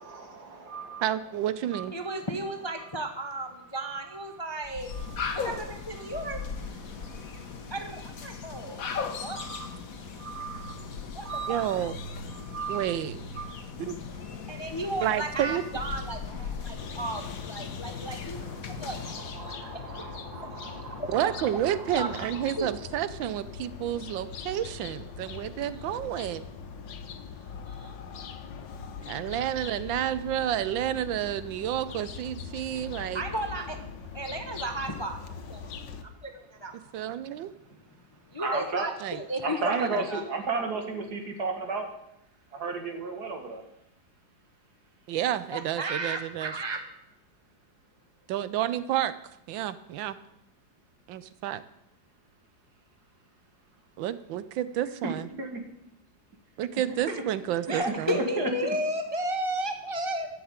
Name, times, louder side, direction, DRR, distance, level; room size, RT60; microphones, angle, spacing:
voice 1, 0.0-1.1 1.7-2.3 3.2-3.3 3.8-4.4 4.9-5.4 6.0-6.5 7.0-7.4 9.1-9.7 10.2-10.7 11.2-11.8 12.3-12.9 13.4-13.6 18.3-22.8 31.7-32.0 32.9-33.4 33.7-33.8 34.1-34.5 34.9-35.3 38.4-38.9 39.4-41.9 42.5-43.6 55.0-55.6 57.1-57.2 57.8-58.8, right 3 dB, 55° right, 4 dB, 2.3 m, -36 dB
voice 2, 1.0-1.9 11.5-11.9 12.7-13.2 13.8-14.0 15.0-15.6 21.1-26.4 29.1-33.2 36.9-37.5 39.0-39.2 39.6-40.0 45.1-46.5 48.3-49.1 49.5-50.2 51.1-51.6 54.0-55.3 56.6-58.2, right 11 dB, 90° right, 15 dB, 1.4 m, -30 dB
voice 3, 1.9-4.9 5.3-6.4 7.7-9.4 11.1-11.6 14.5-18.5 18.8-19.0 20.4-21.1 22.0-22.1 22.6-22.7 25.3-25.5 25.7-25.9 26.8-28.0 28.5-29.3 32.7-33.8 34.1-35.2 35.5-35.7 36.0-36.8 38.3-40.2 45.5-46.8 57.7-60.3, right 1 dB, 20° left, 5 dB, 0.7 m, -34 dB
sound 1, 4.6-19.5, left 5 dB, 50° left, 1.4 m, -38 dB
sound 2, 16.8-36.0, left 6 dB, 75° left, 1.7 m, -42 dB
12.0 x 6.9 x 8.9 m, 0.81 s
omnidirectional pair, 2.0 m